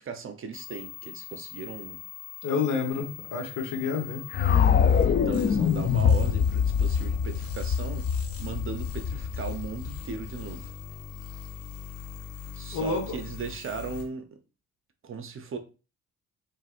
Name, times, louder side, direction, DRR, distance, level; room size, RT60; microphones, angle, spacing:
voice 1, 0.0-2.0 5.1-8.1 8.4-10.7 12.5-14.3 15.0-15.6, right 5 dB, 45° right, 8 dB, 0.8 m, -37 dB
sound 1, 0.5-14.0, left 9 dB, 50° left, 1.4 m, -42 dB
voice 2, 2.4-4.2 12.7-13.2, left 5 dB, 80° left, 4 dB, 1.3 m, -29 dB
sound 2, 4.3-10.4, left 7 dB, 35° left, 0.4 m, -24 dB
4.7 x 3.2 x 2.5 m, 0.33 s
cardioid pair, 90°, 30 cm